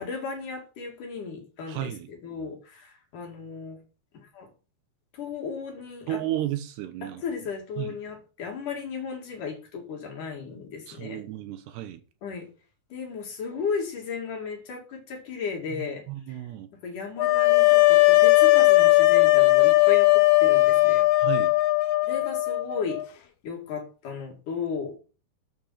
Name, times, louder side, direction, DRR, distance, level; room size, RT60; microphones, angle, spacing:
voice 1, 0.0-3.8 4.1-4.5 5.1-6.2 7.0-11.2 12.2-12.5 12.9-16.4 16.8-21.1 22.1-25.0, left 5 dB, 50° left, 3.3 m, -35 dB
voice 2, 1.7-2.1 6.1-7.2 7.8-8.0 10.9-12.0 15.7-16.7 21.2-21.5, right 13 dB, 75° right, 3.1 m, -33 dB
sound 1, 17.2-23.1, left 20 dB, 85° left, 2.1 m, -18 dB
11.5 x 6.8 x 5.8 m
omnidirectional pair, 5.1 m